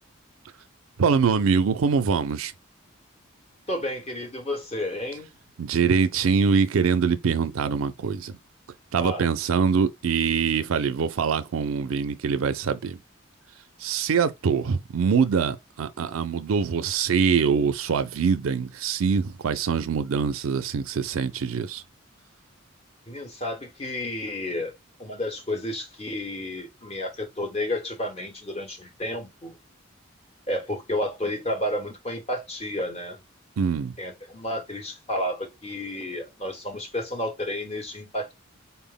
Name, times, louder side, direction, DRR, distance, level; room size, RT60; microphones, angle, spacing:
voice 1, 1.0-2.5 5.6-8.4 8.9-13.0 13.8-21.8 33.6-33.9, right 6 dB, 80° right, 0.4 m, -24 dB
voice 2, 3.7-5.3 9.0-9.3 23.1-24.7 25.0-29.6 30.5-33.2 34.0-38.3, left 1 dB, 30° left, 1.0 m, -31 dB
4.1 x 2.1 x 3.6 m
head